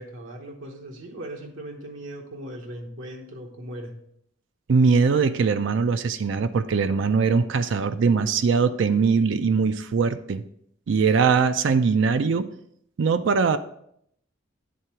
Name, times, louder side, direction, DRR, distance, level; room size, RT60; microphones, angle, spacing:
voice 1, 0.0-4.0, right 1 dB, 85° right, 1 dB, 1.0 m, -38 dB
voice 2, 4.7-10.4 10.9-12.5 13.0-13.6, right 5 dB, 65° right, 10 dB, 0.4 m, -21 dB
9.3 x 3.7 x 4.4 m, 0.72 s
head